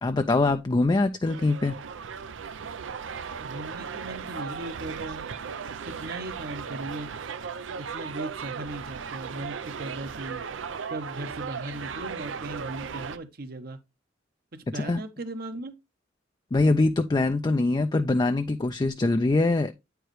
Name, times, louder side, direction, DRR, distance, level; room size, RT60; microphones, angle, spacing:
voice 1, 0.0-1.8 14.7-15.0 16.5-19.7, left 2 dB, 20° left, 0.4 m, -23 dB
sound 1, 1.3-13.2, right 6 dB, 85° right, 0.6 m, -37 dB
voice 2, 3.4-5.3 5.8-7.1 7.8-10.4 10.9-13.8 14.5-15.7, right 1 dB, 55° right, 0.9 m, -38 dB
9.0 x 4.7 x 3.1 m
head